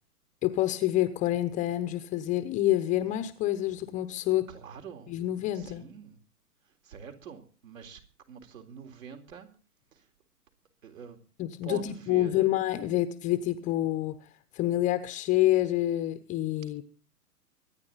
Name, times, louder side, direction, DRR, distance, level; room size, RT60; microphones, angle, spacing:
voice 1, 0.4-4.5 5.1-5.8 11.4-14.2 14.5-16.8, left 14 dB, 15° left, 0.8 m, -27 dB
voice 2, 4.5-5.2 5.5-6.2 6.6-8.0 8.3-9.5 9.9-10.1 10.8-11.2 11.6-12.5, right 7 dB, 60° right, 3.8 m, -45 dB
24.5 x 9.7 x 4.0 m
figure-of-eight pair, 120°, 45 cm